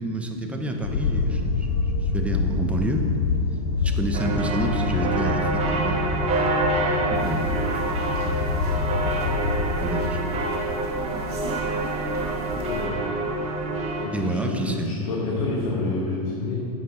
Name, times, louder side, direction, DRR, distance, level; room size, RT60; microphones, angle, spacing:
voice 1, 0.0-1.7 1.9-3.1 3.8-6.1 6.7-8.1 9.0-9.2 9.7-10.4 14.1-14.9, right 1 dB, 5° right, 3 dB, 0.7 m, -29 dB
sound 1, 0.8-10.4, left 4 dB, 90° left, 0.7 m, -27 dB
sound 2, 4.1-14.1, right 2 dB, 35° right, 1.2 m, -27 dB
sound 3, 7.1-12.9, right 3 dB, 80° right, 1.5 m, -35 dB
voice 2, 12.5-13.0 14.0-16.6, left 3 dB, 70° left, -5 dB, 1.6 m, -29 dB
9.0 x 6.7 x 3.8 m, 2.6 s
hypercardioid pair, 105°, 19 cm